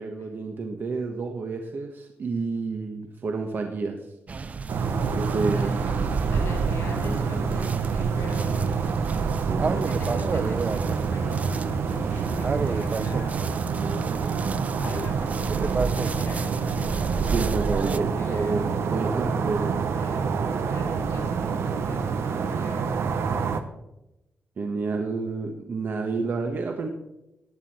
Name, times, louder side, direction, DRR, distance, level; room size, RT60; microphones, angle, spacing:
voice 1, 0.0-4.1 5.1-5.7 9.3-9.9 17.2-19.8 24.6-26.9, right 4 dB, 50° right, 4 dB, 1.3 m, -29 dB
sound 1, 4.3-18.0, right 4 dB, 35° right, 0.5 m, -31 dB
sound 2, 4.7-23.6, right 5 dB, 80° right, 1.1 m, -27 dB
voice 2, 5.3-6.0 6.3-8.8 9.6-13.4 14.8-17.3 17.7-18.7 19.5-19.7 20.0-23.0, left 2 dB, 85° left, 2 dB, 4.4 m, -40 dB
15.5 x 10.0 x 4.3 m, 0.90 s
wide cardioid pair, 130°, 4 cm